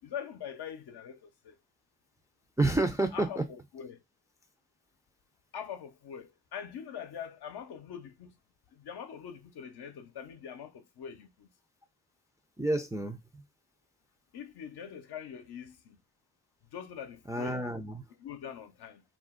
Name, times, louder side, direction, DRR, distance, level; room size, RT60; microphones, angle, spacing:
voice 1, 0.0-1.6 3.1-4.0 5.5-8.4 8.7-11.5 14.3-16.0 16.7-17.7 18.2-19.0, left 8 dB, 65° left, 0.6 m, -43 dB
voice 2, 2.6-3.4 12.6-13.4 17.3-18.0, right 2 dB, 10° right, 0.3 m, -29 dB
2.4 x 2.0 x 3.6 m
cardioid pair, 55°, 43 cm